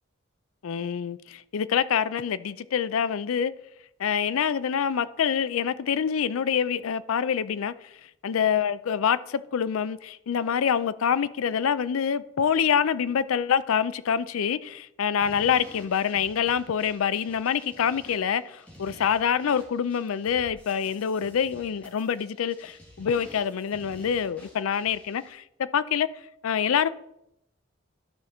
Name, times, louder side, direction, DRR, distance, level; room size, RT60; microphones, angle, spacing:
voice 1, 0.6-3.5 4.0-7.9 8.2-25.4 25.7-26.9, left 7 dB, 85° left, 0.4 m, -26 dB
sound 1, 15.2-25.3, equal, 5° left, 1.7 m, -51 dB
12.0 x 5.1 x 4.2 m
head